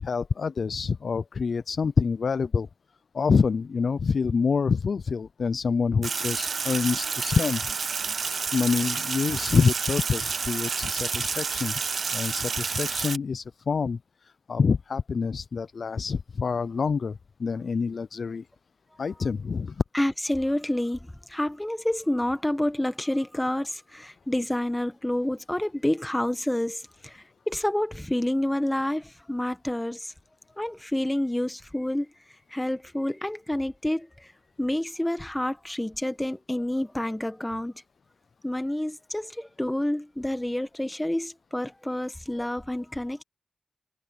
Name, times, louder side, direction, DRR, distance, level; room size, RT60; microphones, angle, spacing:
voice 1, 0.0-2.7 3.1-7.6 8.5-11.8 12.1-14.0 14.2-18.5 19.0-19.8, left 5 dB, 70° left, 0.4 m, -26 dB
Sink (filling or washing), 6.0-13.2, right 5 dB, 75° right, 1.0 m, -29 dB
voice 2, 19.9-30.1 30.6-32.1 32.5-34.3 34.6-37.7 38.4-43.2, left 1 dB, 10° left, 1.2 m, -28 dB
wide cardioid pair, 85°, 0 cm